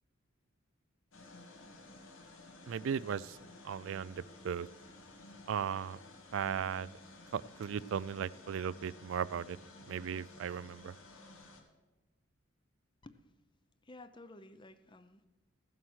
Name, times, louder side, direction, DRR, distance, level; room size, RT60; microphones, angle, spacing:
sound 1, 1.1-11.6, left 2 dB, 75° left, 2.2 m, -54 dB
voice 1, 2.7-3.4 3.6-4.7 5.5-6.0 6.3-6.9 7.3-9.6 9.9-10.9, right 7 dB, 70° right, 19 dB, 0.3 m, -37 dB
voice 2, 13.8-15.3, left 2 dB, 25° left, 12 dB, 0.7 m, -53 dB
16.0 x 7.6 x 6.2 m, 1.1 s
head